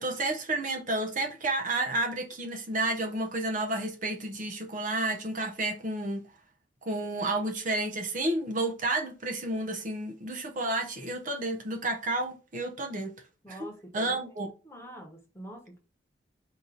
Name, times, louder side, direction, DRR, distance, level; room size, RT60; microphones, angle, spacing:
voice 1, 0.0-6.2 6.8-13.1 13.5-13.6 13.9-14.5, right 2 dB, 45° right, 0.6 m, -31 dB
voice 2, 13.4-14.2 14.6-15.8, equal, 15° left, 1.1 m, -45 dB
4.6 x 2.6 x 3.8 m
head